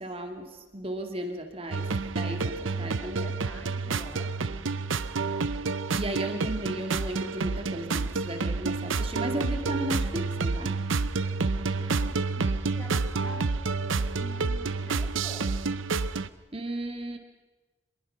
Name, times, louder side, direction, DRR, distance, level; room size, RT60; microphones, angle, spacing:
voice 1, 0.0-1.9 2.1-3.3 5.4-5.5 5.9-10.8 16.5-17.2, right 1 dB, 30° right, 5 dB, 2.2 m, -35 dB
sound 1, 1.7-16.3, right 4 dB, 85° right, 0.7 m, -29 dB
voice 2, 2.7-4.7 11.8-15.5, equal, 15° left, 3 dB, 2.5 m, -48 dB
25.0 x 21.5 x 5.6 m, 1.2 s
head